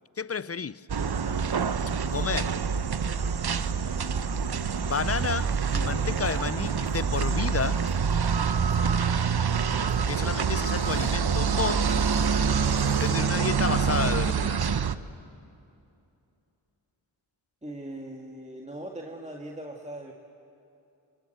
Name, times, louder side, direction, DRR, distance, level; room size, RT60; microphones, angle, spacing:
voice 1, 0.2-0.9 2.1-2.6 4.9-7.8 10.1-11.9 13.0-14.7, left 5 dB, 30° left, 0.5 m, -31 dB
sound 1, 0.9-14.9, right 6 dB, 50° right, 0.9 m, -26 dB
sound 2, 6.6-6.9 7.6-7.9 8.7-8.9 9.6-10.0 10.6-11.1 11.6-13.2, left 3 dB, 45° left, 4.5 m, -47 dB
voice 2, 17.6-20.1, right 1 dB, 15° right, 2.0 m, -40 dB
26.0 x 25.5 x 8.0 m
cardioid pair, 55°, 50 cm